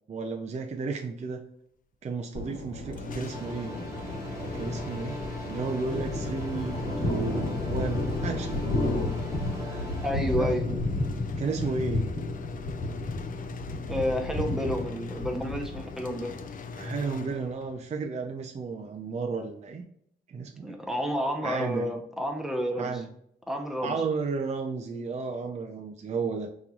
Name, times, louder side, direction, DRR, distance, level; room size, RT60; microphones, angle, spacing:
voice 1, 0.1-1.4 2.0-3.8 4.5-8.6 9.6-9.9 10.4-10.9 11.4-12.1 16.8-19.9 20.3-20.7 21.4-21.9 22.8-23.1 23.8-26.5, right 4 dB, 40° right, 3 dB, 0.4 m, -33 dB
Thunder, 2.3-17.1, left 2 dB, 85° left, 1.4 m, -33 dB
sound 1, 2.9-17.9, left 4 dB, 50° left, 0.5 m, -40 dB
sound 2, 3.3-10.1, right 1 dB, 15° right, 1.2 m, -41 dB
voice 2, 10.0-10.7 13.9-16.3 20.6-23.0 23.5-24.0, equal, ahead, 2 dB, 0.7 m, -30 dB
5.3 x 3.0 x 2.3 m, 0.71 s
wide cardioid pair, 135°, 18 cm